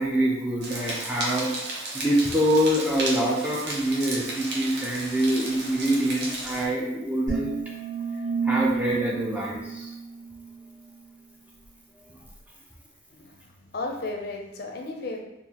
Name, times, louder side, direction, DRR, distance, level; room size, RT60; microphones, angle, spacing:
voice 1, 0.0-7.6 8.4-9.9, right 1 dB, 10° right, -3 dB, 0.5 m, -25 dB
sound 1, 0.6-6.6, right 2 dB, 60° right, 0.7 m, -34 dB
sound 2, 7.3-10.6, right 5 dB, 40° right, 1.3 m, -31 dB
voice 2, 13.1-15.2, left 2 dB, 55° left, 2 dB, 0.5 m, -34 dB
3.9 x 2.5 x 2.8 m, 0.90 s
head